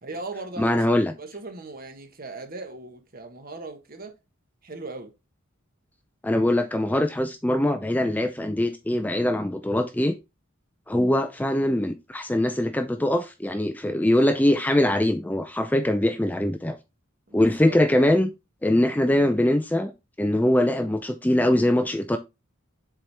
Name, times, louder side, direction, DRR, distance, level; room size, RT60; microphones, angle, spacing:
voice 1, 0.0-4.2 4.6-5.1 17.3-18.1, right 3 dB, 45° right, 1.2 m, -39 dB
voice 2, 0.6-1.1 6.2-10.1 10.9-16.8 17.3-18.3 18.6-19.9 20.2-22.2, left 1 dB, 10° left, 0.4 m, -22 dB
7.5 x 4.3 x 3.3 m
head